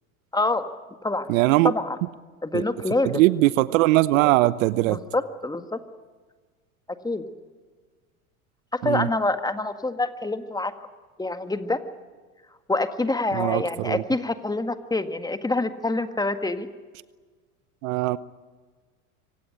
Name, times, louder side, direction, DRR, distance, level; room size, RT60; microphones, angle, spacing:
voice 1, 0.3-0.7 1.0-1.3 1.6-2.0 2.4-3.2 4.9-5.8 7.0-7.3 8.8-10.7 11.2-11.8 12.7-16.7, left 2 dB, 10° left, 9 dB, 1.8 m, -26 dB
voice 2, 1.3-1.7 2.5-2.6 3.0-5.0 8.8-9.1 13.3-14.0 17.8-18.2, right 18 dB, 65° right, 18 dB, 0.9 m, -20 dB
25.5 x 17.5 x 10.0 m, 1.4 s
hypercardioid pair, 85°, 43 cm